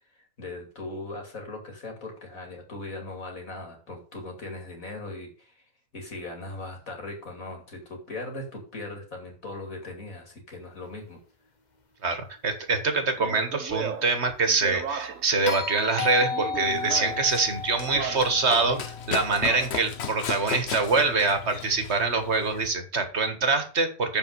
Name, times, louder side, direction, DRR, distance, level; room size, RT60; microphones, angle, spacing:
voice 1, 0.1-11.2, left 2 dB, 80° left, 2 dB, 3.1 m, -39 dB
voice 2, 12.0-18.8 19.1-24.2, right 3 dB, 55° right, 7 dB, 1.7 m, -25 dB
Speech, 13.2-15.4 16.2-17.3 17.8-18.9 19.3-19.9, right 6 dB, 70° right, 1.4 m, -36 dB
sound 1, 15.5-19.7 22.0-22.1, left 5 dB, 35° left, 1.1 m, -34 dB
Run, 16.7-22.7, left 6 dB, 55° left, 1.2 m, -36 dB
7.1 x 5.7 x 6.7 m, 0.38 s
omnidirectional pair, 1.4 m